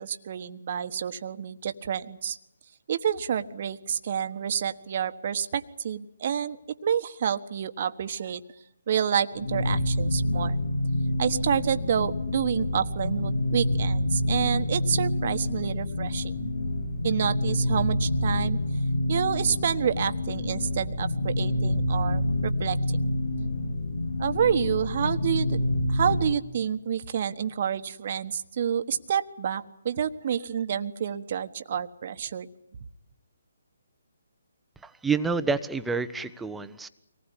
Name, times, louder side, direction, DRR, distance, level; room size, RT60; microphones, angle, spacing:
voice 1, 0.0-2.4 2.9-8.4 8.9-10.6 11.2-16.5 17.0-18.6 19.1-23.1 24.2-25.6 25.9-32.5, right 8 dB, 45° right, 11 dB, 1.3 m, -28 dB
sound 1, 9.3-26.3, left 1 dB, 75° left, 3.6 m, -27 dB
voice 2, 34.8-36.9, right 4 dB, 5° right, 10 dB, 0.9 m, -28 dB
25.0 x 19.5 x 10.0 m, 0.80 s
figure-of-eight pair, 145°, 0 cm